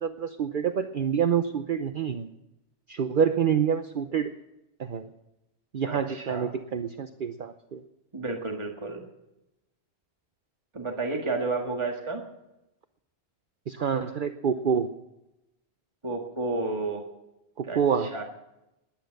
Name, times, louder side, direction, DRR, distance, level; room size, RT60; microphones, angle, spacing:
voice 1, 0.0-2.3 2.9-4.3 4.8-5.1 5.7-7.8 13.7-14.9 17.6-18.2, right 7 dB, 55° right, 9 dB, 0.9 m, -27 dB
voice 2, 5.9-6.5 8.1-9.0 10.7-12.2 16.0-17.0 17.6-18.2, right 3 dB, 25° right, 2 dB, 1.9 m, -31 dB
19.0 x 10.5 x 6.6 m, 0.91 s
omnidirectional pair, 1.1 m